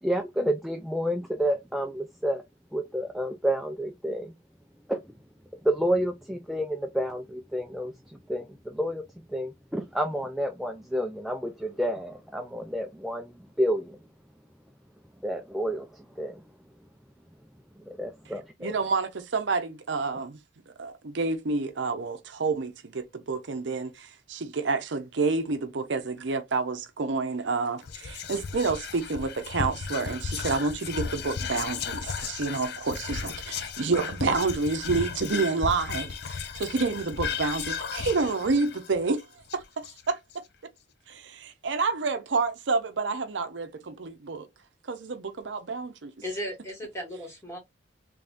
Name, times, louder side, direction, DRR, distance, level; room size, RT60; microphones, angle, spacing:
voice 1, 0.0-2.4 2.7-4.3 4.9-5.0 5.6-7.9 8.3-9.0 9.3-14.0 15.2-16.4 18.0-18.7, equal, ahead, 0.4 m, -29 dB
voice 2, 18.6-20.4 20.7-39.2 39.5-40.2 41.1-44.5 44.9-46.1, right 4 dB, 70° right, 0.7 m, -29 dB
Whispering, 27.8-40.3, left 6 dB, 60° left, 0.5 m, -35 dB
voice 3, 46.2-47.6, equal, 15° left, 1.8 m, -36 dB
3.5 x 3.3 x 2.5 m
head